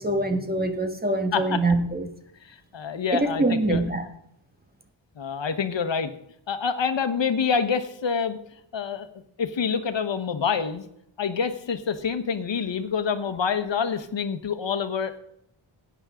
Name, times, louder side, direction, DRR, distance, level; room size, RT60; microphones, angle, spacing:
voice 1, 0.0-2.1 3.1-4.0, right 2 dB, 20° right, 6 dB, 1.6 m, -24 dB
voice 2, 1.3-1.6 2.4-3.8 5.2-6.1 6.5-8.4 8.7-9.1 9.4-10.9 11.2-15.2, left 6 dB, 70° left, 9 dB, 1.3 m, -27 dB
16.0 x 9.7 x 3.7 m, 0.73 s
wide cardioid pair, 115°, 47 cm